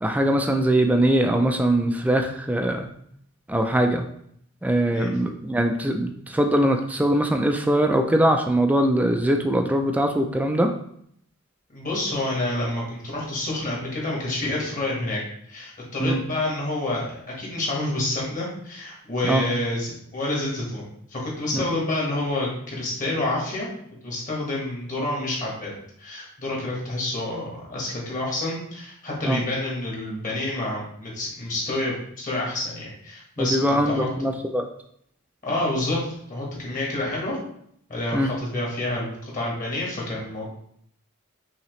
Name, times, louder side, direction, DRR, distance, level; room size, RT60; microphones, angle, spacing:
voice 1, 0.0-2.9 3.5-4.0 4.6-10.7 16.0-16.2 19.2-19.4 21.5-21.6 29.2-29.4 33.4-34.6 38.1-38.3, right 1 dB, 5° right, 4 dB, 0.3 m, -22 dB
voice 2, 11.7-15.2 15.5-20.8 21.1-23.7 24.0-25.7 26.0-34.1 35.4-36.0 36.3-37.4 37.9-40.5, left 1 dB, 40° left, -3 dB, 1.4 m, -28 dB
5.6 x 2.9 x 3.1 m, 0.68 s
head